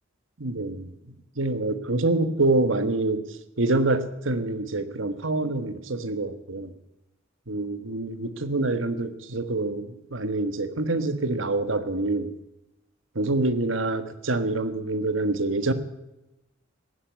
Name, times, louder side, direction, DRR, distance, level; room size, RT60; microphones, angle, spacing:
voice 1, 0.4-6.7 7.5-12.3 13.1-15.7, right 2 dB, 70° right, 11 dB, 1.4 m, -26 dB
16.5 x 9.9 x 8.3 m, 0.92 s
head